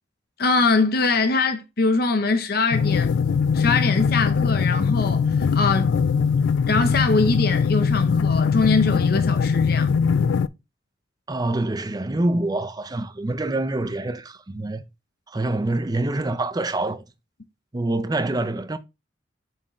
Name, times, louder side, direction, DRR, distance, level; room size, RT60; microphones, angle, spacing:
voice 1, 0.4-3.1 3.5-5.9 6.7-9.9, left 3 dB, 55° left, 0.7 m, -22 dB
sound 1, 2.7-10.5, left 6 dB, 80° left, 0.3 m, -21 dB
voice 2, 11.3-14.8 15.3-17.0 17.7-18.8, right 2 dB, 20° right, 0.5 m, -26 dB
7.2 x 4.6 x 3.1 m
head